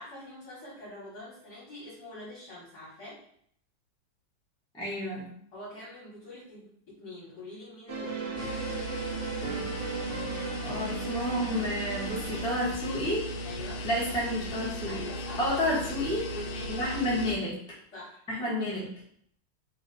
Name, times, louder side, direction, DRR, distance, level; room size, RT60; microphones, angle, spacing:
voice 1, 0.0-3.2 5.5-8.6 13.4-13.9 14.9-15.5 16.3-17.0 17.9-18.6, left 1 dB, 50° left, -8 dB, 1.8 m, -45 dB
voice 2, 4.7-5.3 10.3-13.3 13.8-15.0 15.4-16.3 16.7-17.5 18.3-18.9, left 1 dB, 5° left, -6 dB, 0.8 m, -30 dB
sound 1, 7.9-13.0, right 5 dB, 80° right, 1.6 m, -37 dB
sound 2, 8.4-17.4, left 1 dB, 75° left, 1.4 m, -37 dB
4.0 x 2.5 x 4.1 m, 0.65 s
omnidirectional pair, 2.3 m